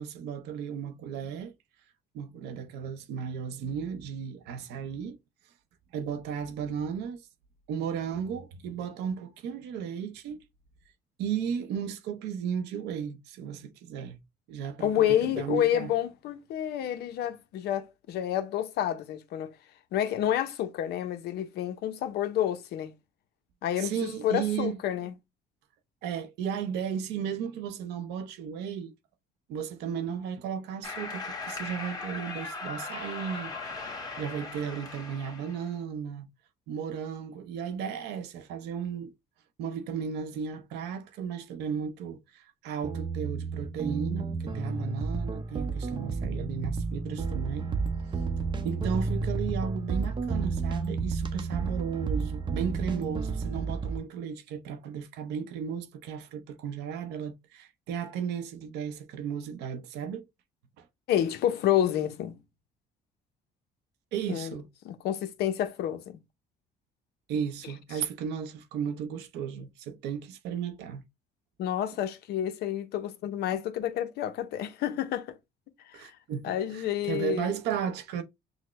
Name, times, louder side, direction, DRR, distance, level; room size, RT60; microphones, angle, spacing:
voice 1, 0.0-1.5 2.1-5.2 5.9-7.2 7.7-10.4 11.2-14.2 14.5-15.9 23.8-24.8 26.0-28.9 29.5-36.3 36.7-39.1 39.6-47.7 48.1-48.2 48.6-60.3 60.8-60.9 64.1-64.7 67.3-71.0 75.9-78.2, right 7 dB, 85° right, 0.7 m, -35 dB
voice 2, 14.8-19.5 19.9-22.9 23.6-25.1 61.1-62.4 64.3-64.5 64.8-66.2 71.6-75.4 75.9-76.1 76.4-77.5, left 11 dB, 75° left, 0.7 m, -29 dB
sound 1, 30.8-35.7, left 4 dB, 20° left, 1.4 m, -38 dB
sound 2, 42.8-54.0, right 4 dB, 30° right, 0.7 m, -31 dB
6.3 x 2.1 x 3.0 m
cardioid pair, 110°, 17 cm